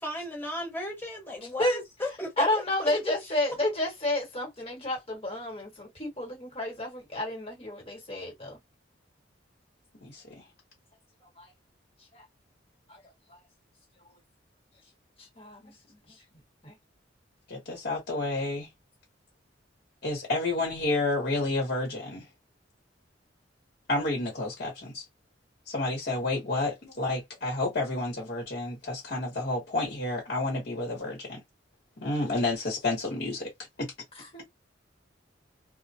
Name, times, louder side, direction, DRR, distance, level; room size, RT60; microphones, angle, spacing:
voice 1, 0.0-3.0, left 1 dB, 10° left, 1.2 m, -35 dB
voice 2, 2.4-8.6 11.4-11.5 12.1-12.2 12.9-13.0 13.3-13.4 15.2-15.6 15.9-16.2 16.6-16.7 34.2-34.4, left 1 dB, 30° left, 1.3 m, -31 dB
voice 3, 10.0-10.4 15.6-15.7 17.5-18.7 20.0-22.2 23.9-25.0 25.7-31.4 32.0-33.5 33.8-33.9, left 2 dB, 55° left, 1.0 m, -30 dB
2.1 x 2.1 x 2.7 m
head